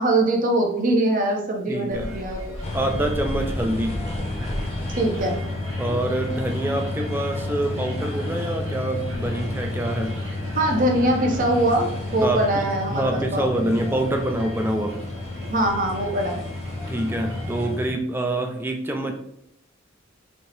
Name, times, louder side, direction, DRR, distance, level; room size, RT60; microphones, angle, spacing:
voice 1, 0.0-2.6 4.9-5.4 10.6-13.7 15.5-16.4, right 1 dB, 40° right, 2 dB, 0.7 m, -22 dB
voice 2, 1.7-2.1 2.7-4.0 5.8-10.1 12.2-15.0 16.9-19.1, right 1 dB, 10° right, 3 dB, 0.4 m, -26 dB
sound 1, 1.9-17.7, equal, 75° right, 1.4 m, -38 dB
sound 2, 2.6-17.9, left 2 dB, 30° left, 0.7 m, -31 dB
4.2 x 2.8 x 3.3 m, 0.75 s
head